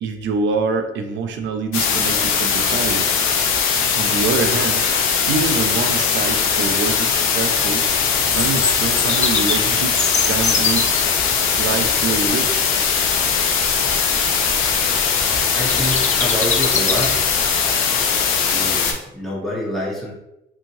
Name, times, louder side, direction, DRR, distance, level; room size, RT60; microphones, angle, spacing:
voice 1, 0.0-3.1 3.9-4.9 5.3-7.9 8.3-10.9 11.6-12.6, right 4 dB, 70° right, 7 dB, 0.5 m, -25 dB
sound 1, 1.7-18.9, left 6 dB, 85° left, 0.5 m, -20 dB
Bird vocalization bird call bird song, 7.9-17.5, left 5 dB, 35° left, 0.4 m, -27 dB
voice 2, 15.6-17.1 18.4-20.1, equal, ahead, -7 dB, 1.2 m, -26 dB
2.7 x 2.7 x 2.7 m, 0.91 s
cardioid pair, 90°, 20 cm